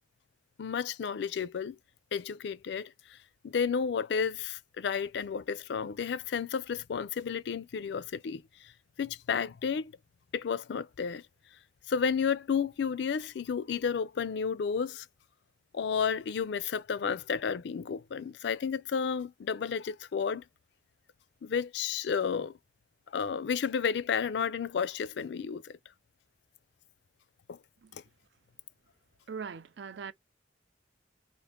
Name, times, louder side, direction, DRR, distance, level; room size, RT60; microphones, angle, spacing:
voice 1, 0.6-1.8 2.1-3.2 3.4-8.4 9.0-9.9 10.3-11.2 11.9-15.1 15.7-20.4 21.4-22.5 23.1-25.8 27.5-27.6 27.9-28.0, left 6 dB, 70° left, 0.4 m, -32 dB
voice 2, 29.3-30.1, right 6 dB, 70° right, 0.4 m, -40 dB
3.6 x 2.5 x 3.5 m
head